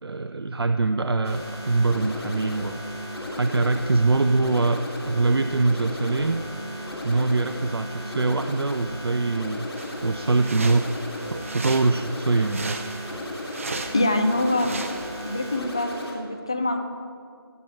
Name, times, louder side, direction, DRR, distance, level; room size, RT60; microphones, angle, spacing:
voice 1, 0.0-2.8 3.3-6.5 7.0-9.7 10.0-10.9 11.3-12.8, right 3 dB, 70° right, 8 dB, 0.6 m, -23 dB
sound 1, 1.2-16.1, left 1 dB, 75° left, 3.4 m, -35 dB
sound 2, 9.8-15.6, right 3 dB, 30° right, 0.7 m, -37 dB
voice 2, 13.9-14.8 15.3-16.8, left 1 dB, 10° left, 5 dB, 0.3 m, -24 dB
15.0 x 6.7 x 7.6 m, 2.2 s
figure-of-eight pair, 160°, 13 cm